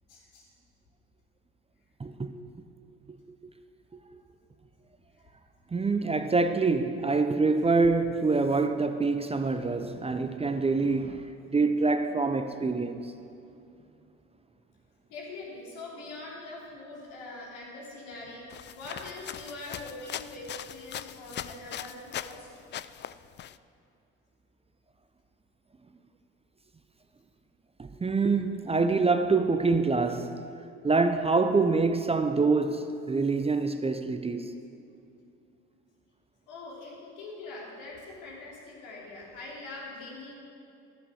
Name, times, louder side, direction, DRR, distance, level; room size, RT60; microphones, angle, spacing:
voice 1, 0.1-0.5 15.1-18.4 18.8-22.5 36.5-40.4, left 2 dB, 75° left, 3.1 m, -43 dB
voice 2, 2.0-2.3 5.7-13.1 27.8-30.4 30.8-34.5, right 3 dB, 20° right, 0.6 m, -26 dB
sound 1, 18.5-22.4 22.7-23.6, left 11 dB, 35° left, 0.4 m, -40 dB
11.0 x 8.3 x 6.4 m
hypercardioid pair, 65°, 32 cm